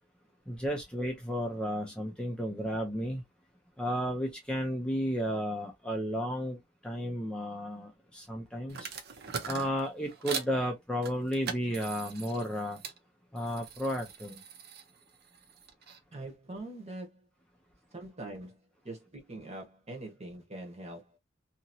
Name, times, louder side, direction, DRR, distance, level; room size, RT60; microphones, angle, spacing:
voice 1, 0.5-3.2 3.8-8.9 9.5-12.8 13.3-14.4, equal, 5° left, 0.6 m, -33 dB
sound 1, 8.7-10.5 11.0-13.0 13.4-16.0, right 6 dB, 55° right, 0.7 m, -41 dB
voice 2, 16.1-17.3 17.9-18.6 18.8-21.2, right 2 dB, 35° right, 1.2 m, -43 dB
2.9 x 2.7 x 2.6 m
head